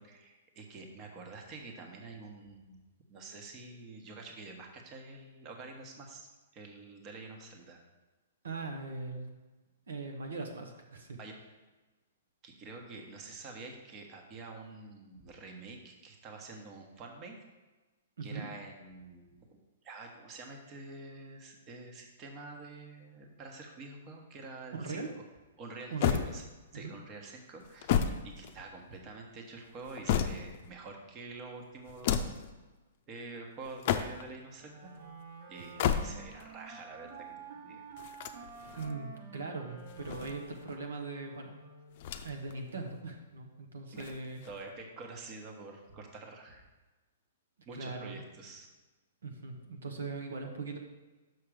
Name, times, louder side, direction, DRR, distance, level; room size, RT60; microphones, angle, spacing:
voice 1, 0.0-2.8 3.1-7.8 11.2-11.3 12.4-17.4 18.2-19.6 19.8-25.0 25.6-26.4 26.7-27.9 28.2-32.4 33.1-34.9 35.5-37.8 43.9-44.0 44.4-46.7 47.7-48.7, right 3 dB, 30° right, 2 dB, 1.2 m, -47 dB
voice 2, 8.4-9.3 9.9-11.2 18.2-18.5 24.7-25.1 25.9-26.2 26.7-26.9 38.8-41.5 42.2-44.4 47.8-48.2 49.2-50.8, right 3 dB, 80° right, 2 dB, 1.1 m, -40 dB
sound 1, 26.0-26.8 27.6-29.0 29.6-30.7 31.8-32.5 33.6-34.4 35.6-36.5 38.0-38.9 39.8-40.8 42.0-42.5 42.9-43.0 43.9-44.7, left 8 dB, 50° left, 0.5 m, -33 dB
Wind instrument woodwind instrument, 34.6-42.1, right 5 dB, 55° right, 1.7 m, -50 dB
6.3 x 5.7 x 5.0 m, 1.2 s
hypercardioid pair, 130°, 0 cm